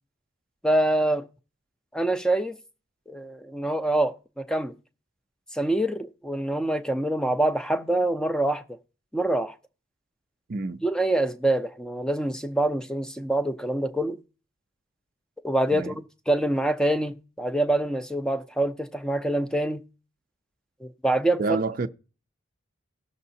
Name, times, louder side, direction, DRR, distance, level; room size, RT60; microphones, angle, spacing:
voice 1, 0.6-1.2 1.9-2.6 3.1-4.7 5.5-8.6 9.1-9.5 10.8-14.2 15.4-19.8 20.8-21.4, right 1 dB, 5° left, 0.5 m, -25 dB
voice 2, 10.5-10.8 15.7-15.9 21.4-21.9, right 3 dB, 45° right, 0.5 m, -28 dB
18.0 x 6.5 x 2.7 m
head